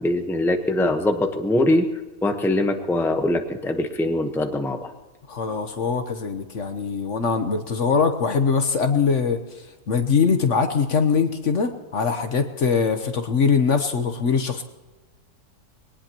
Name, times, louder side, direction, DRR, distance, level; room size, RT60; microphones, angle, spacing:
voice 1, 0.0-1.8 2.2-4.8, left 1 dB, ahead, 5 dB, 0.9 m, -22 dB
voice 2, 5.3-9.4 9.9-14.6, left 5 dB, 55° left, 8 dB, 1.2 m, -22 dB
22.0 x 18.5 x 3.0 m, 1.2 s
omnidirectional pair, 1.7 m